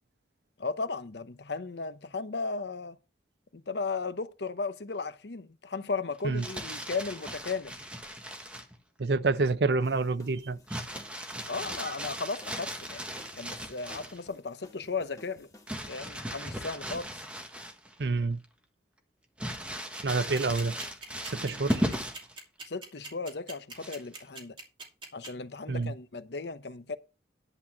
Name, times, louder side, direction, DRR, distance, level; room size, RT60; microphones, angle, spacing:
voice 1, 0.6-3.0 3.5-7.8 11.5-15.5 15.9-17.2 22.7-24.6 25.1-27.0, left 4 dB, 65° left, 0.8 m, -36 dB
Crumpling crinkling, 6.2-8.8 10.7-14.2 15.7-18.0 18.4-18.5 19.4-22.3 23.8-24.2, equal, 5° right, 1.4 m, -37 dB
voice 2, 9.0-10.6 18.0-18.4 20.0-20.8 21.2-21.8 25.7-25.9, right 3 dB, 65° right, 0.6 m, -28 dB
sound 1, 9.8-15.7, left 1 dB, 20° left, 2.0 m, -56 dB
sound 2, 20.3-25.3, right 3 dB, 25° right, 2.9 m, -42 dB
11.0 x 4.2 x 7.3 m
head